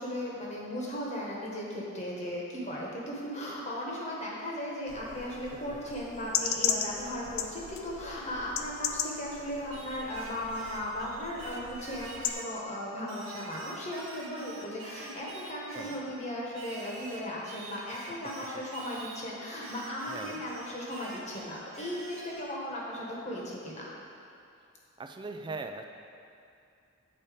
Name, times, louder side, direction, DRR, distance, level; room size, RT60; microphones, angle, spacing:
voice 1, 0.0-23.9, equal, 35° left, -4 dB, 1.3 m, -37 dB
sound 1, 4.9-12.3, left 8 dB, 90° left, 0.5 m, -36 dB
Singing, 9.7-12.6 13.1-16.1 16.5-19.2 19.6-22.5, right 3 dB, 70° right, 0.8 m, -47 dB
voice 2, 20.1-20.4 25.0-25.8, right 3 dB, 25° right, 5 dB, 0.3 m, -40 dB
8.9 x 4.2 x 5.0 m, 2.5 s
head